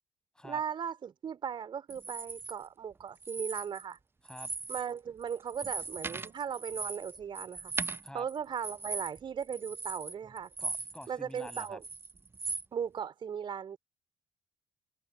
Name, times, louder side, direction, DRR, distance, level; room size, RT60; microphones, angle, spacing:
voice 1, 0.4-4.0 4.7-7.7 8.1-10.5 11.1-11.8 12.7-13.8, right 7 dB, 45° right, 3.6 m, -37 dB
sound 1, 1.9-2.5 3.2-4.0 4.3-4.9 5.2-11.1 11.4-12.7, right 3 dB, 20° right, 1.0 m, -39 dB
voice 2, 10.6-11.8, left 1 dB, 5° left, 7.0 m, -47 dB
figure-of-eight pair, 45°, 11 cm